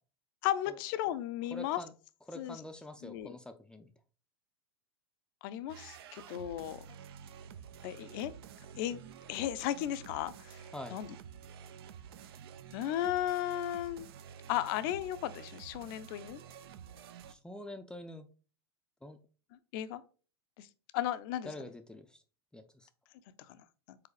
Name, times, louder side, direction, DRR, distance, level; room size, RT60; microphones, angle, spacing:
voice 1, 0.4-1.8 2.4-2.6 3.0-3.4 5.4-6.9 7.8-8.3 8.8-9.0 9.3-10.6 10.9-11.1 12.7-14.1 14.5-16.4 19.7-20.0 20.6-20.7 20.9-21.5 23.5-23.6 23.9-24.0, left 12 dB, 55° left, 12 dB, 0.6 m, -35 dB
voice 2, 1.5-1.9 2.3-3.9 10.7-11.0 17.3-18.3 19.0-19.2 21.4-22.2 22.5-22.9, left 1 dB, 5° left, 7 dB, 0.5 m, -46 dB
sound 1, 5.7-17.3, right 7 dB, 65° right, 0.6 m, -50 dB
4.8 x 4.0 x 4.8 m, 0.37 s
hypercardioid pair, 105°, 14 cm